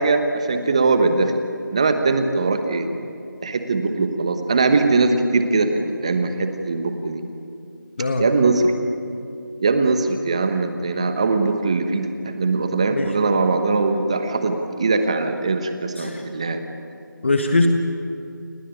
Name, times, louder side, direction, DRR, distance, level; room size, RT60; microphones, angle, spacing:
voice 1, 0.0-1.4 1.7-2.9 3.4-7.2 8.2-8.7 9.6-16.6, right 3 dB, 15° right, 7 dB, 1.2 m, -21 dB
voice 2, 17.2-17.7, left 2 dB, 35° left, 5 dB, 1.5 m, -21 dB
30.0 x 20.0 x 9.0 m, 2.6 s
figure-of-eight pair, 170°, 11 cm